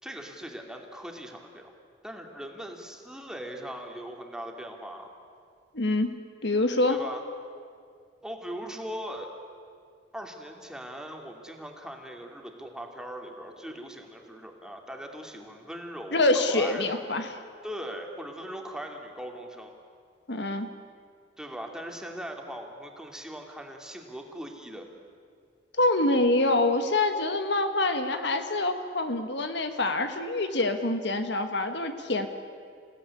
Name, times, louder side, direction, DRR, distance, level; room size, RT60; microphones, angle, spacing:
voice 1, 0.0-1.7 2.0-5.1 6.9-7.2 8.2-9.3 10.1-17.0 17.6-19.7 21.4-24.9, equal, 5° right, 2 dB, 2.6 m, -40 dB
voice 2, 5.7-6.1 6.4-7.0 16.1-17.3 20.3-20.7 25.8-32.3, left 2 dB, 65° left, 7 dB, 1.7 m, -25 dB
28.5 x 17.0 x 9.9 m, 2.2 s
head